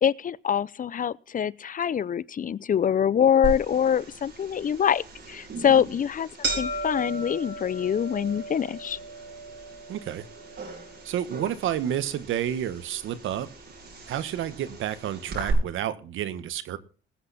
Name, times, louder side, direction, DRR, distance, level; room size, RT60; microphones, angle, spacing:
voice 1, 0.0-9.0, left 8 dB, 45° left, 0.6 m, -25 dB
sound 1, 3.4-15.5, right 3 dB, 60° right, 7.8 m, -37 dB
voice 2, 9.9-10.3 11.0-13.5 14.1-16.8, right 10 dB, 80° right, 1.4 m, -30 dB
20.0 x 8.4 x 4.2 m
cardioid pair, 90°, 20 cm